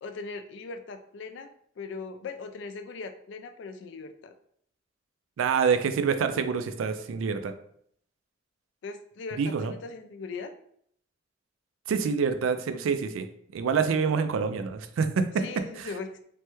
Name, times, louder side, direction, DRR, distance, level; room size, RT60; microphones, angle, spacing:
voice 1, 0.0-4.3 8.8-10.5 15.4-16.2, left 4 dB, 65° left, 7 dB, 0.3 m, -39 dB
voice 2, 5.4-7.5 9.4-9.7 11.9-13.3 13.5-15.4 15.8-15.9, right 6 dB, 90° right, 9 dB, 0.3 m, -26 dB
3.2 x 2.1 x 3.0 m, 0.67 s
head